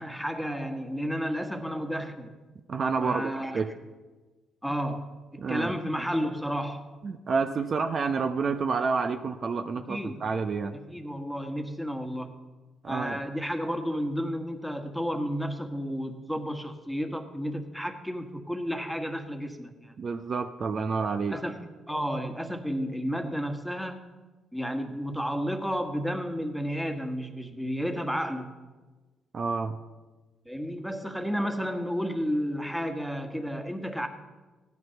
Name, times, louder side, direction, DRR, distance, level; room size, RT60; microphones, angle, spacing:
voice 1, 0.0-2.4 3.0-3.6 4.6-6.9 9.9-10.3 10.9-12.3 12.9-20.0 21.3-21.6 21.9-24.1 24.5-28.5 30.4-34.1, equal, ahead, 5 dB, 1.6 m, -32 dB
voice 2, 2.7-3.7 5.4-5.7 7.0-10.8 12.8-13.2 20.0-21.4 29.3-29.8, right 5 dB, 45° right, 7 dB, 0.8 m, -29 dB
16.0 x 11.0 x 5.9 m, 1.3 s
cardioid pair, 90°, 0 cm